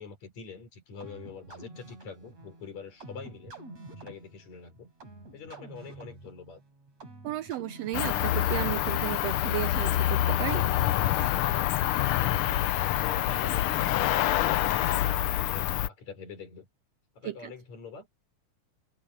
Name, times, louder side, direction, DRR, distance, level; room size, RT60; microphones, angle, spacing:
voice 1, 0.0-3.6 4.0-4.9 5.3-6.6 12.3-16.7 17.2-18.1, left 5 dB, 70° left, 5.7 m, -45 dB
sound 1, 1.0-9.2, right 2 dB, 60° right, 8.1 m, -48 dB
voice 2, 7.2-10.6 17.2-17.5, right 14 dB, 75° right, 1.5 m, -34 dB
Cricket, 7.9-15.9, left 13 dB, 90° left, 1.2 m, -26 dB
omnidirectional pair, 3.3 m